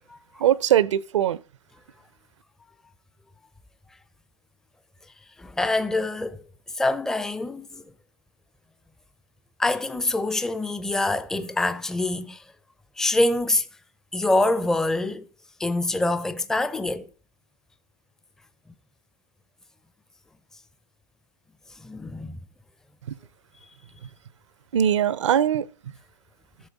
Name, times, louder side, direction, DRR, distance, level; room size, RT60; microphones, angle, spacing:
voice 1, 0.4-1.4 23.1-23.2 24.7-25.7, right 10 dB, 70° right, 0.6 m, -21 dB
voice 2, 5.4-6.4 6.8-7.8 9.6-12.4 13.0-13.7 14.1-15.3 15.6-17.1 21.8-22.4, left 2 dB, 5° left, 0.5 m, -25 dB
14.5 x 6.5 x 4.0 m
hypercardioid pair, 125°, 16 cm